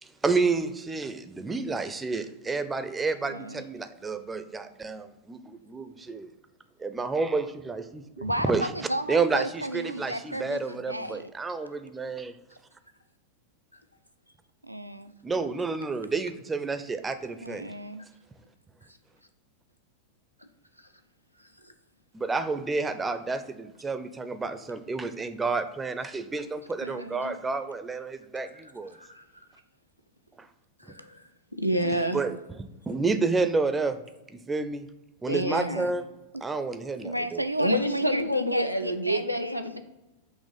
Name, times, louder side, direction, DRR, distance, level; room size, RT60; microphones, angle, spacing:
voice 1, 0.0-6.3 6.8-8.7 9.1-12.4 15.2-17.7 22.1-29.0 30.4-30.5 30.9-31.0 32.1-34.0 34.3-34.9 35.2-36.0 36.4-37.4, right 4 dB, 15° right, 10 dB, 0.5 m, -30 dB
voice 2, 3.3-3.6 8.2-11.3 14.6-15.1 17.4-18.1 26.8-27.4 31.8-32.2 36.8-39.6, right 1 dB, 90° right, 11 dB, 0.3 m, -33 dB
voice 3, 30.8-31.2 31.5-32.2 35.3-35.9 37.6-39.8, equal, 90° left, 7 dB, 0.5 m, -28 dB
6.3 x 3.0 x 5.3 m, 1.0 s
figure-of-eight pair, 90°, 0 cm